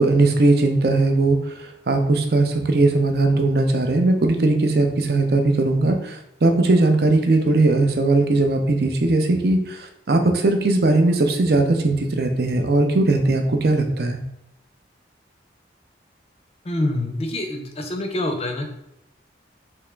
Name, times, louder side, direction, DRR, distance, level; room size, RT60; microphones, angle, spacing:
voice 1, 0.0-1.4 1.9-9.8 10.1-14.2, right 2 dB, 55° right, 5 dB, 0.5 m, -19 dB
voice 2, 16.6-18.7, left 1 dB, 35° left, 4 dB, 0.5 m, -26 dB
3.5 x 2.9 x 3.3 m, 0.82 s
head